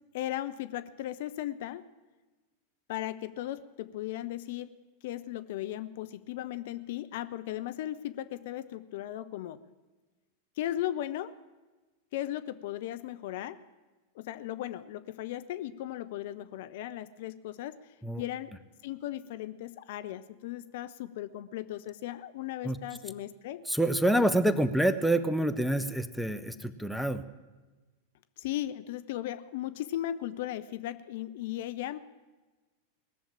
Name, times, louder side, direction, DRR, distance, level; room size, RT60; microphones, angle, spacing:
voice 1, 0.1-1.9 2.9-4.8 5.0-9.6 10.6-11.3 12.1-13.6 14.2-17.8 18.2-18.5 18.8-23.6 28.4-32.0, left 13 dB, 50° left, 12 dB, 0.5 m, -37 dB
voice 2, 23.7-27.2, right 1 dB, ahead, 12 dB, 0.7 m, -27 dB
19.0 x 7.2 x 8.8 m, 1.2 s
figure-of-eight pair, 90°, 0 cm